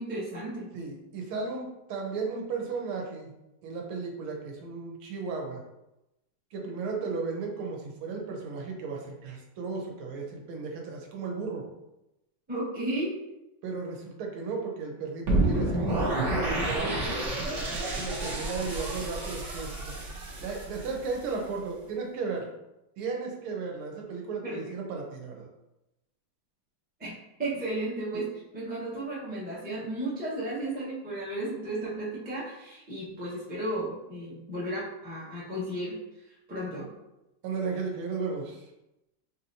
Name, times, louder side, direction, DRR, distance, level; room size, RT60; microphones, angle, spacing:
voice 1, 0.0-0.7 12.5-13.2 24.4-24.6 27.0-36.0 36.5-36.9, right 1 dB, 10° right, -7 dB, 0.6 m, -34 dB
voice 2, 0.7-3.3 3.6-5.6 6.5-11.6 13.6-17.1 18.0-20.1 20.4-22.5 23.0-25.5 28.1-28.2 37.4-38.7, right 4 dB, 85° right, 1 dB, 1.6 m, -35 dB
sound 1, 15.3-21.3, right 2 dB, 50° right, 0.9 m, -30 dB
4.7 x 2.8 x 2.6 m, 0.93 s
omnidirectional pair, 2.3 m